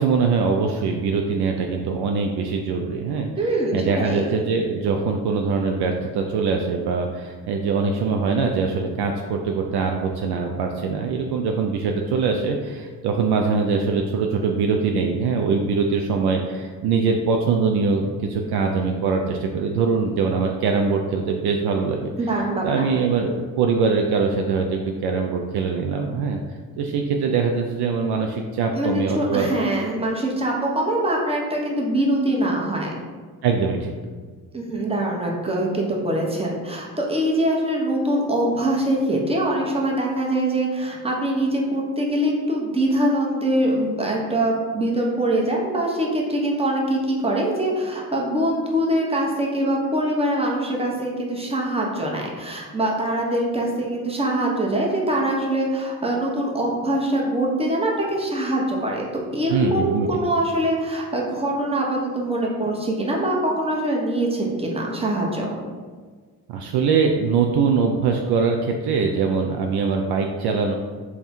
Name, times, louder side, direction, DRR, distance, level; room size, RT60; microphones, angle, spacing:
voice 1, 0.0-3.3 3.7-22.1 22.6-26.4 26.8-29.5 33.4-33.9 59.5-60.1 66.5-70.7, right 5 dB, 55° right, 2 dB, 0.5 m, -22 dB
voice 2, 3.4-4.3 22.2-22.9 28.7-32.9 34.5-59.0 59.3-65.5, right 1 dB, 10° right, -2 dB, 1.0 m, -23 dB
3.4 x 2.3 x 4.2 m, 1.5 s
hypercardioid pair, 45°, 46 cm